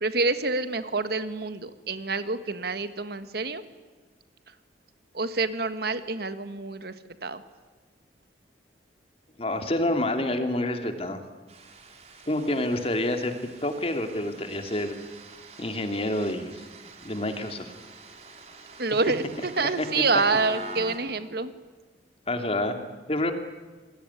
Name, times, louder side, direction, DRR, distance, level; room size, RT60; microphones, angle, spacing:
voice 1, 0.0-3.6 5.1-6.9 7.2-7.4 18.8-21.5, right 3 dB, 60° right, 11 dB, 1.6 m, -27 dB
voice 2, 9.4-11.2 12.3-13.3 13.6-15.0 15.6-16.5 17.0-17.7 19.6-19.9 20.8-20.9 22.3-22.8 23.1-23.3, left 1 dB, 35° left, 6 dB, 2.7 m, -28 dB
sound 1, 11.5-21.0, right 2 dB, 35° right, 4.3 m, -45 dB
27.5 x 21.5 x 9.8 m, 1.3 s
head